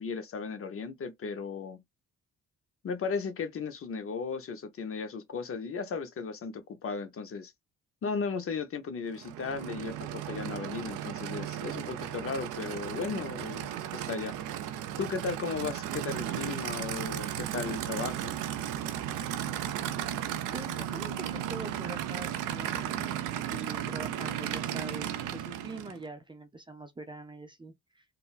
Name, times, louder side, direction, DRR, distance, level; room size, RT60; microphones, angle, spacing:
voice 1, 0.0-1.8 2.8-7.5 8.0-14.4 15.0-18.3, left 5 dB, 50° left, 0.7 m, -36 dB
Aircraft / Idling, 9.1-26.0, right 11 dB, 90° right, 0.5 m, -35 dB
voice 2, 20.5-28.0, right 2 dB, 15° right, 0.5 m, -44 dB
3.7 x 2.1 x 2.4 m
cardioid pair, 90°, 30 cm